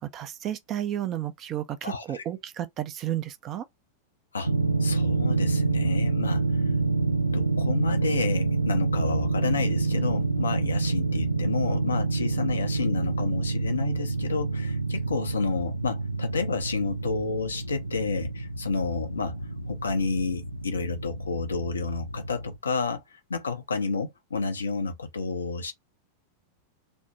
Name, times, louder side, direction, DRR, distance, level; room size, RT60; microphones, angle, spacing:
voice 1, 0.1-3.6, right 11 dB, 35° right, 0.5 m, -32 dB
voice 2, 1.8-2.2 4.3-4.5 4.8-6.4 7.3-19.4 19.7-23.0 23.3-25.7, left 4 dB, 75° left, 0.6 m, -30 dB
sound 1, 4.4-22.6, right 3 dB, 90° right, 0.4 m, -27 dB
3.1 x 2.1 x 2.8 m
figure-of-eight pair, 90°, 0 cm